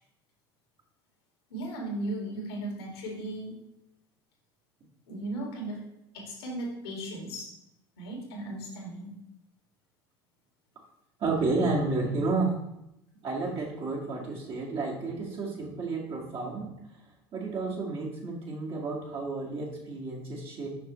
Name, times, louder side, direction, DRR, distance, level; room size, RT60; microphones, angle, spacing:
voice 1, 1.5-3.5 5.1-5.8 6.1-7.5 8.0-9.1, right 1 dB, 80° left, -2 dB, 2.2 m, -36 dB
voice 2, 11.2-12.6 13.2-16.7 17.3-20.7, right 3 dB, 45° right, -3 dB, 2.1 m, -31 dB
6.4 x 5.7 x 3.2 m, 0.83 s
hypercardioid pair, 75°, 13 cm